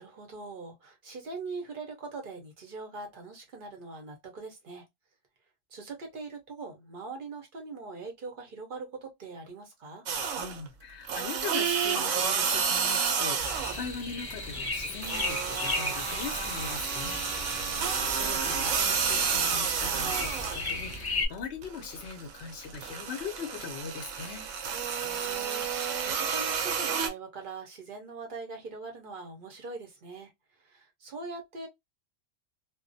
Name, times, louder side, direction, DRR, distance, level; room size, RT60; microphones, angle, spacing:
voice 1, 0.0-4.9 5.7-10.1 17.6-18.1 25.0-31.7, right 3 dB, 50° right, 0.7 m, -42 dB
sound 1, 10.1-10.7 11.0-13.9 14.3-21.0 21.4-27.1, right 6 dB, 75° right, 0.9 m, -30 dB
voice 2, 10.4-17.2 17.6-24.5, left 6 dB, 65° left, 0.7 m, -40 dB
sound 2, 13.4-21.3, left 2 dB, 25° left, 0.5 m, -36 dB
2.3 x 2.1 x 2.5 m
omnidirectional pair, 1.4 m